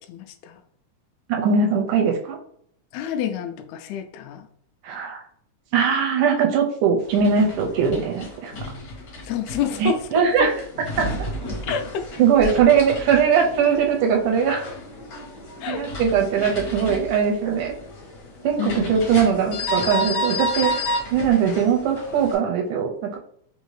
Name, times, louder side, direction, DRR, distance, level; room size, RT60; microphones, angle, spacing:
voice 1, 0.1-0.6 2.9-4.5 9.2-10.5 11.6-12.1 12.4-12.5 15.6-15.9 18.6-18.9, left 8 dB, 90° left, 6 dB, 1.6 m, -28 dB
voice 2, 1.3-2.4 4.8-5.2 5.7-8.5 9.8-10.5 11.0-11.1 12.2-14.6 15.6-17.7 18.4-20.7 21.1-23.2, right 6 dB, 80° right, 2 dB, 2.1 m, -20 dB
sound 1, 7.0-22.3, left 1 dB, 70° left, 1.0 m, -32 dB
5.0 x 2.7 x 3.1 m, 0.65 s
omnidirectional pair, 3.8 m